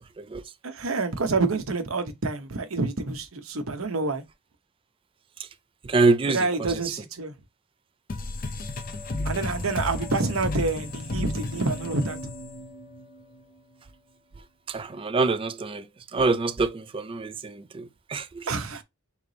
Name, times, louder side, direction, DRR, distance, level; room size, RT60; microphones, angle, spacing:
voice 1, 0.6-4.2 6.3-7.3 9.2-12.2 18.5-18.8, right 3 dB, 90° right, 0.9 m, -27 dB
voice 2, 5.8-6.8 14.7-15.8 16.1-18.4, right 3 dB, 25° right, 0.4 m, -25 dB
sound 1, 8.1-13.4, left 2 dB, 45° left, 0.5 m, -33 dB
3.3 x 3.2 x 3.9 m
head